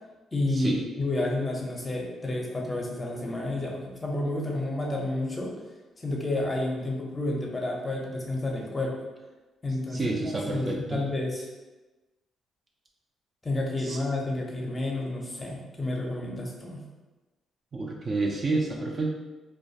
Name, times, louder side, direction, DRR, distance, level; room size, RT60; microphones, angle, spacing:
voice 1, 0.3-5.5 6.0-9.0 9.6-10.1 10.5-11.4 13.4-16.8, left 2 dB, 20° left, -2 dB, 0.6 m, -30 dB
voice 2, 9.9-11.0 13.8-14.0 17.7-19.1, right 3 dB, 40° right, 0 dB, 0.3 m, -29 dB
2.3 x 2.2 x 2.6 m, 1.2 s
cardioid pair, 90°, 0 cm